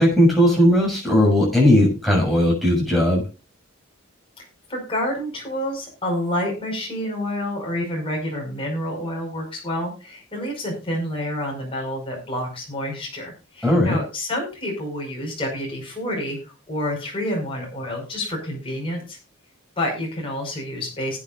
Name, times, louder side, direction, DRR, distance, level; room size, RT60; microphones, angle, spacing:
voice 1, 0.0-3.2 13.6-14.0, left 1 dB, ahead, -4 dB, 6.5 m, -17 dB
voice 2, 4.7-19.2 19.8-21.2, left 1 dB, 25° left, -1 dB, 5.4 m, -28 dB
19.5 x 8.8 x 2.5 m, 0.31 s
head